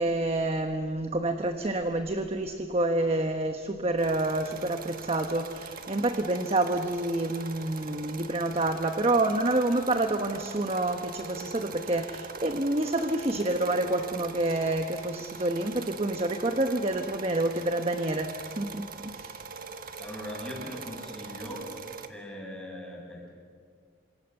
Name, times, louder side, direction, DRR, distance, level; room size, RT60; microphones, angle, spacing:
voice 1, 0.0-19.4, right 2 dB, 35° right, 6 dB, 1.2 m, -28 dB
sound 1, 4.0-22.1, right 4 dB, 50° right, 1.5 m, -42 dB
voice 2, 20.0-21.7 22.1-23.3, left 1 dB, 5° left, -3 dB, 7.3 m, -40 dB
29.0 x 26.0 x 6.8 m, 2.1 s
head